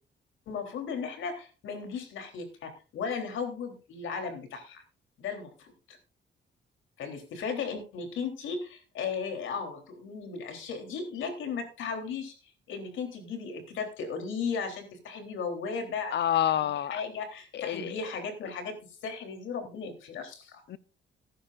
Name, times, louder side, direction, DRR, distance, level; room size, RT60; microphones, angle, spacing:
voice 1, 0.5-4.8 5.2-6.0 7.0-12.3 12.7-16.1 16.6-18.8 19.0-20.6, left 5 dB, 75° left, 3.6 m, -36 dB
voice 2, 16.1-16.9 17.5-18.0 20.7-20.8, left 10 dB, 60° left, 0.9 m, -28 dB
18.5 x 10.5 x 2.6 m
cardioid pair, 90°, 20 cm